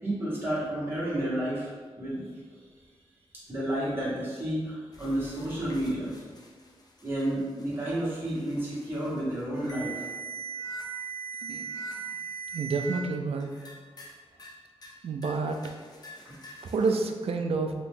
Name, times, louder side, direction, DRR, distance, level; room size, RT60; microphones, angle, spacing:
voice 1, 0.0-1.7 2.0-2.3 3.3-6.1 7.0-10.1 16.2-16.3, right 1 dB, 20° right, -10 dB, 1.2 m, -31 dB
sound 1, 4.9-13.0 13.4-14.1 14.4-14.9 15.2-17.1, right 5 dB, 40° left, 0.5 m, -41 dB
voice 2, 12.5-13.6 15.0-15.7 16.6-17.7, right 4 dB, 70° right, 5 dB, 0.3 m, -29 dB
2.9 x 2.7 x 3.5 m, 1.5 s
wide cardioid pair, 150°, 11 cm